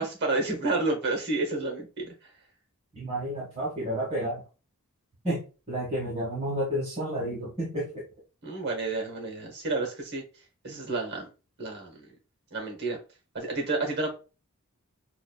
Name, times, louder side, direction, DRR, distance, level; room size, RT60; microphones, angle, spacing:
voice 1, 0.0-2.1 8.4-10.2 10.6-11.3 11.6-12.1 12.5-13.0 13.3-14.1, right 2 dB, 50° right, 2 dB, 1.0 m, -30 dB
voice 2, 2.9-4.4 5.2-8.0, right 1 dB, 30° right, -5 dB, 1.3 m, -31 dB
6.0 x 2.3 x 2.2 m, 0.33 s
head